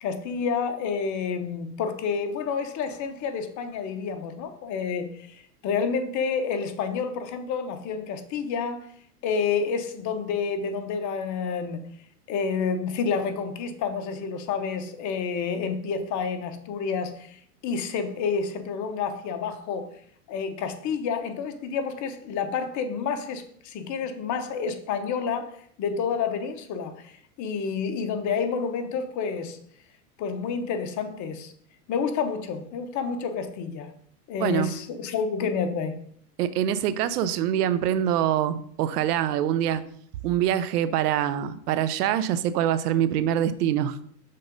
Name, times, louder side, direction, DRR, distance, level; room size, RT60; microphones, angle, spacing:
voice 1, 0.0-8.9 9.2-11.8 12.3-17.4 17.6-19.9 20.3-27.1 27.4-29.6 30.2-31.5 31.9-33.9 34.3-36.0, left 6 dB, 35° left, 0.9 m, -29 dB
voice 2, 34.4-34.7 36.4-39.8 40.2-44.0, right 10 dB, 70° right, 0.7 m, -24 dB
6.5 x 3.8 x 5.1 m
hypercardioid pair, 115°, 48 cm